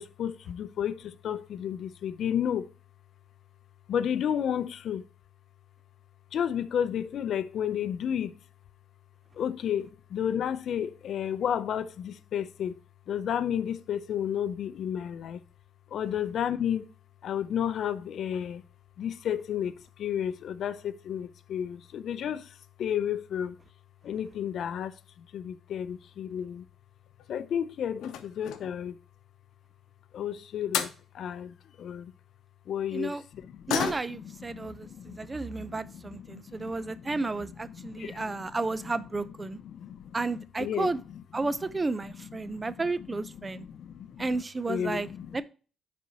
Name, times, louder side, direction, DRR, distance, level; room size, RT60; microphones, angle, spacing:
voice 1, 0.0-2.7 3.9-5.1 6.3-8.4 9.3-12.8 13.1-15.4 15.9-16.9 17.2-18.6 19.0-23.6 24.0-26.7 27.3-29.0 30.1-32.1 32.7-33.7 34.1-41.5 42.0-44.4 44.7-45.4, left 9 dB, 70° left, 0.5 m, -33 dB
sound 1, 26.9-27.4 28.0-28.8 30.4-30.5 30.7-31.0 33.7-34.3 34.7-34.8 35.2-35.4 36.2-36.3 36.6-36.7 37.1-37.4 37.7-37.8 38.1-38.2, left 9 dB, 85° left, 0.8 m, -33 dB
voice 2, 33.7-39.6 40.1-41.0 41.3-43.6 44.2-45.1 45.3-45.4, right 3 dB, 25° right, 0.5 m, -32 dB
9.9 x 4.2 x 2.8 m
cardioid pair, 90°, 0 cm